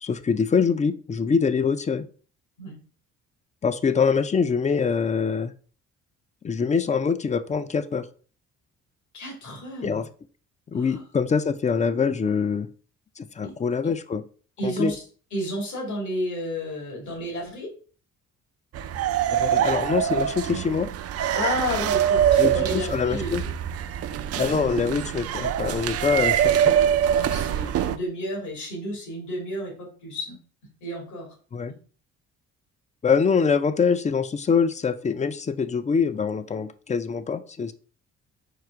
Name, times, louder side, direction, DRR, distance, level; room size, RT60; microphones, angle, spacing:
voice 1, 0.0-2.1 3.6-5.5 6.4-8.1 9.8-10.1 10.7-12.7 13.2-14.2 14.6-14.9 19.3-20.9 22.4-23.4 24.4-26.8 31.5-31.7 33.0-37.7, left 5 dB, 25° left, 13 dB, 0.4 m, -24 dB
voice 2, 9.1-10.0 10.7-11.0 13.4-13.5 14.6-15.0 15.3-17.7 21.3-23.5 24.1-24.2 27.1-30.4 30.8-31.3 31.7-31.8, left 1 dB, 70° left, -1 dB, 2.4 m, -31 dB
sound 1, 18.7-28.0, right 10 dB, 55° right, 0.4 m, -24 dB
4.7 x 2.4 x 4.7 m, 0.41 s
cardioid pair, 90°, 30 cm